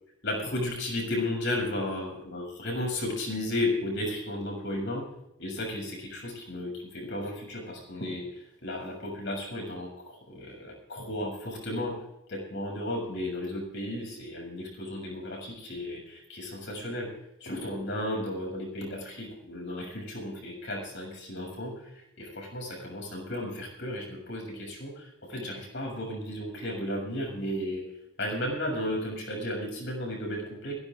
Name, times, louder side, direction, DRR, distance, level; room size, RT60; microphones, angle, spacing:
voice 1, 0.2-5.0 5.4-12.0 12.3-17.1 17.4-27.8 28.2-30.7, left 1 dB, 60° left, 1 dB, 6.9 m, -34 dB
23.0 x 16.5 x 2.5 m, 0.87 s
head